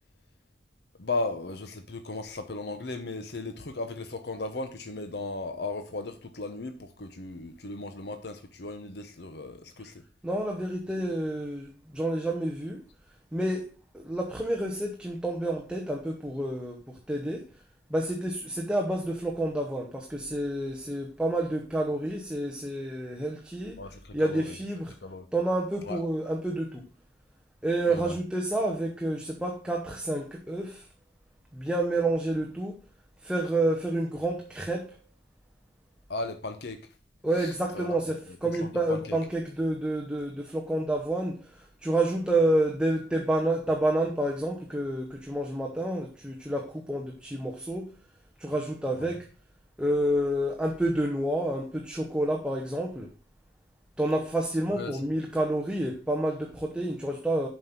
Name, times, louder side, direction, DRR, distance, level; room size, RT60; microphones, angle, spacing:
voice 1, 1.0-10.0 23.8-24.5 25.0-25.3 25.8-26.0 27.9-28.1 36.1-36.8 37.4-38.2 38.6-39.2 49.0-49.2 54.8-54.9, left 2 dB, 60° left, 0.8 m, -36 dB
voice 2, 10.2-12.8 13.3-13.7 13.9-17.6 17.9-23.8 24.1-25.0 25.3-26.9 27.6-30.9 31.5-32.8 33.2-35.0 37.2-47.9 48.4-49.3 49.8-53.1 54.0-57.5, right 1 dB, 5° right, 0.8 m, -29 dB
7.4 x 5.3 x 5.8 m
head